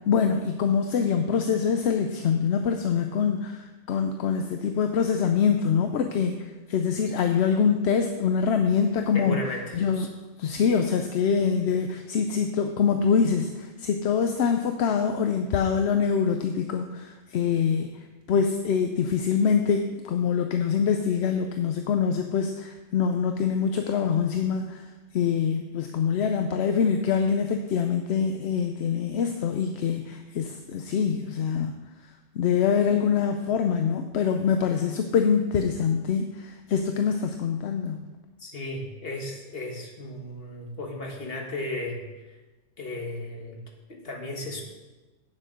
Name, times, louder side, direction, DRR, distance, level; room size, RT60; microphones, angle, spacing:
voice 1, 0.1-9.4 9.7-10.1 10.4-17.9 18.3-24.8 25.1-31.8 32.4-38.1, left 6 dB, 65° left, 5 dB, 0.8 m, -24 dB
voice 2, 9.1-10.1 38.4-42.0 42.8-43.6 43.9-44.6, left 2 dB, 50° left, 1 dB, 1.7 m, -35 dB
9.0 x 7.3 x 5.1 m, 1.2 s
omnidirectional pair, 1.3 m